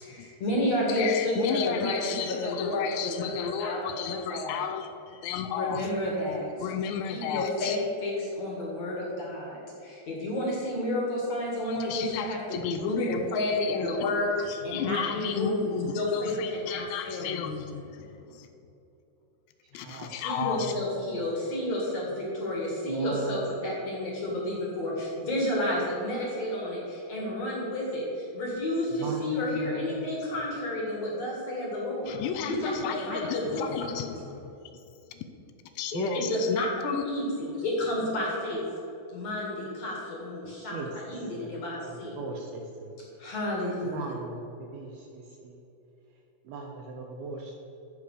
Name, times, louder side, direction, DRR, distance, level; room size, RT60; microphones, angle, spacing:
voice 1, 0.1-4.6 5.5-6.7 7.1-14.3 14.6-17.5 20.2-33.6 33.9-34.0 36.1-38.6 39.1-42.2 43.2-44.0, left 1 dB, 50° left, -3 dB, 2.1 m, -31 dB
voice 2, 0.9-5.9 6.6-7.8 11.6-18.5 19.7-20.7 32.1-34.5 35.2-35.3 35.8-37.0, left 8 dB, 85° left, 8 dB, 2.7 m, -33 dB
voice 3, 19.7-20.2 20.5-21.2 22.9-23.4 29.0-30.1 35.8-36.3 40.6-40.9 41.3-41.6 41.9-43.0 43.8-45.6 46.4-47.6, right 3 dB, 75° right, 0 dB, 2.3 m, -38 dB
13.5 x 5.1 x 6.5 m, 2.9 s
omnidirectional pair, 5.2 m